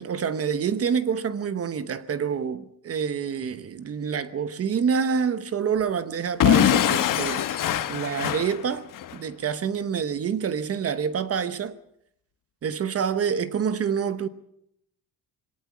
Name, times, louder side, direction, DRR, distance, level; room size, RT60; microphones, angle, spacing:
voice 1, 0.0-8.8 9.1-11.8 12.6-14.3, right 7 dB, 40° right, 0.9 m, -27 dB
Explosion / Shatter, 6.4-9.2, left 11 dB, 55° left, 1.2 m, -22 dB
21.5 x 18.5 x 7.2 m
cardioid pair, 160°, 38 cm